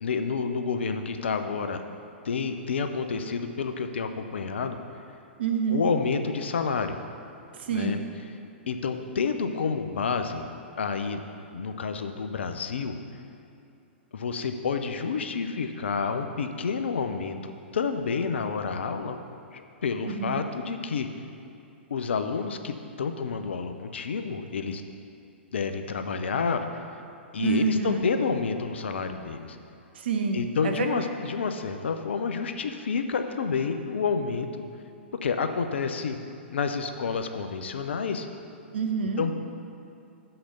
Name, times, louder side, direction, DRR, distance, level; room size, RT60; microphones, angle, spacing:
voice 1, 0.0-1.8 2.2-4.8 5.7-7.0 7.7-8.0 8.7-10.5 10.8-11.2 11.5-13.0 14.1-19.2 19.5-21.1 21.9-24.8 25.5-26.8 27.3-29.6 30.3-34.6 35.2-36.2 36.5-38.3 39.2-39.3, left 5 dB, 70° left, 7 dB, 0.6 m, -29 dB
voice 2, 5.4-5.8 7.5-8.0 20.0-20.4 27.4-28.0 29.9-30.9 38.7-39.3, right 6 dB, 60° right, 4 dB, 1.0 m, -27 dB
6.5 x 5.8 x 7.0 m, 2.7 s
figure-of-eight pair, 110°, 6 cm